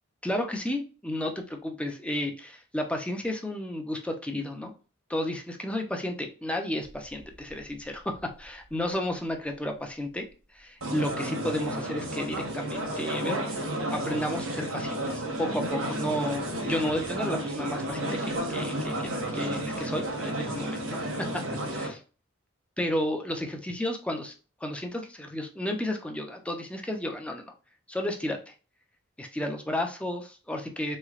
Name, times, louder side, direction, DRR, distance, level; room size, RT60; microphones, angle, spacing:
voice 1, 0.2-4.7 5.1-10.3 10.5-21.4 21.7-22.0 22.8-24.3 24.6-27.5 27.9-28.5 29.2-31.0, left 1 dB, 5° left, 4 dB, 0.5 m, -32 dB
sound 1, 6.8-6.9 7.2-7.3 7.6-7.7 10.8-21.9, right 1 dB, 80° right, 1.2 m, -32 dB
3.6 x 3.2 x 2.4 m, 0.35 s
head